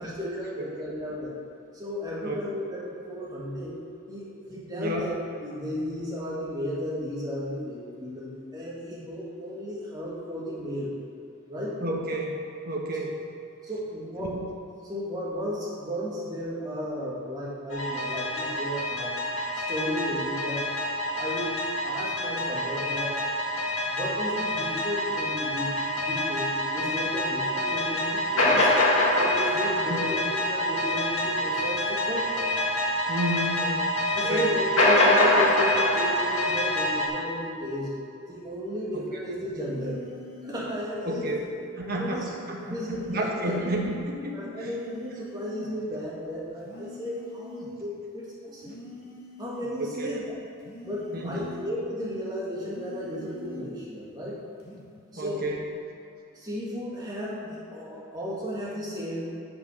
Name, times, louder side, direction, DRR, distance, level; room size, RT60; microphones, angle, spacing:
voice 1, 0.0-1.4 1.7-3.8 4.1-5.2 5.4-10.9 11.5-11.8 13.6-14.5 14.8-19.1 19.5-20.7 21.1-21.6 21.8-23.2 23.9-28.8 29.2-32.5 34.1-37.9 38.3-40.0 40.4-41.5 41.8-42.3 42.7-43.6 44.3-48.8 49.4-50.4 50.8-54.4 55.1-55.4 56.3-59.3, equal, 20° right, -7 dB, 2.2 m, -34 dB
voice 2, 11.8-13.2 14.2-14.4 29.9-30.2 33.1-33.9 34.2-34.5 41.0-41.4 41.8-42.2 42.5-42.8 43.1-44.7 49.8-50.2 51.1-51.5 55.2-55.6, right 1 dB, 45° right, -1 dB, 1.3 m, -31 dB
sound 1, 17.7-37.1, left 1 dB, 75° left, 1.9 m, -26 dB
sound 2, 39.6-40.8 42.6-43.8 44.6-45.8 46.6-47.8 48.6-49.8 50.6-51.8 52.6-53.8 54.6-54.9, left 3 dB, 45° left, 1.4 m, -44 dB
8.3 x 7.0 x 6.5 m, 2.6 s
head